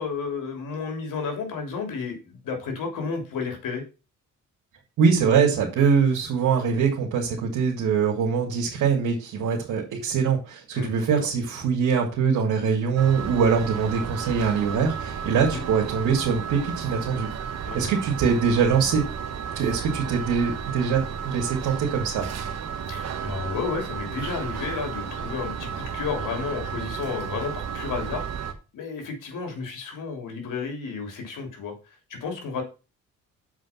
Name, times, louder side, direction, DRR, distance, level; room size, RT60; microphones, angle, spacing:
voice 1, 0.0-3.8 10.7-11.3 15.5-15.6 17.7-17.9 22.9-28.2 28.7-31.7 32.1-32.6, left 5 dB, 75° left, 4 dB, 3.2 m, -32 dB
voice 2, 5.0-17.3 17.7-19.0 19.5-22.3, right 6 dB, 85° right, -2 dB, 2.5 m, -23 dB
sound 1, 13.0-28.5, right 7 dB, 55° right, 1.3 m, -33 dB
7.4 x 5.2 x 5.9 m, 0.31 s
cardioid pair, 120°, 31 cm